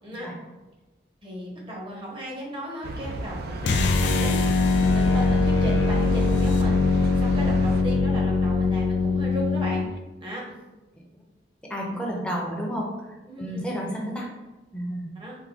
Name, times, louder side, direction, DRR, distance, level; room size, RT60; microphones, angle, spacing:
voice 1, 1.2-9.9 10.2-10.4 13.3-13.7 15.1-15.4, equal, 25° right, -3 dB, 0.8 m, -36 dB
sound 1, 2.8-7.8, right 2 dB, 55° right, 0.3 m, -33 dB
sound 2, 3.6-9.9, left 3 dB, 65° left, 0.3 m, -22 dB
voice 2, 11.7-12.9 13.4-14.3 14.7-15.1, equal, 5° left, -2 dB, 0.6 m, -31 dB
3.5 x 2.1 x 3.5 m, 1.1 s
head